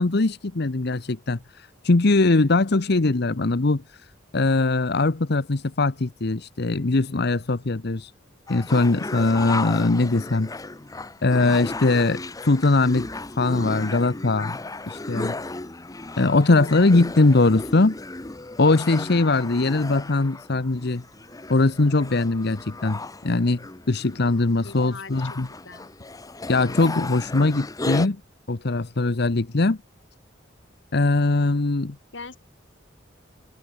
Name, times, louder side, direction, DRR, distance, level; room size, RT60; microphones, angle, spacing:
voice 1, 0.0-3.8 4.3-8.1 8.5-10.5 11.2-13.1 13.3-14.6 14.9-15.3 16.2-17.9 18.6-21.0 21.5-23.6 23.9-25.5 26.5-28.2 28.5-29.8 30.9-32.0, left 2 dB, 60° left, 0.9 m, -21 dB
sound 1, 8.5-28.1, left 2 dB, 20° left, 0.8 m, -35 dB
voice 2, 24.6-25.4 25.6-25.9 32.1-32.4, left 4 dB, 75° left, 2.8 m, -41 dB
head